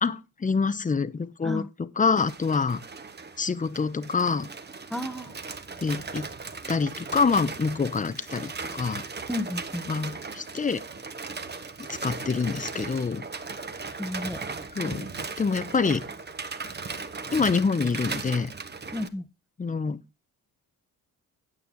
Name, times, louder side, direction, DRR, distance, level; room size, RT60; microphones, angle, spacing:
voice 1, 0.0-2.8 3.4-4.5 5.8-6.3 6.7-9.0 9.9-10.8 11.9-13.2 14.7-15.1 15.4-16.1 17.3-18.5 19.6-20.0, left 5 dB, 20° left, 0.8 m, -26 dB
sound 1, 2.2-19.1, right 4 dB, 30° right, 1.2 m, -37 dB
voice 2, 4.9-5.3 9.3-9.8 14.0-14.4 18.9-19.2, left 1 dB, ahead, 1.0 m, -32 dB
9.6 x 8.7 x 3.8 m
cardioid pair, 105°, 36 cm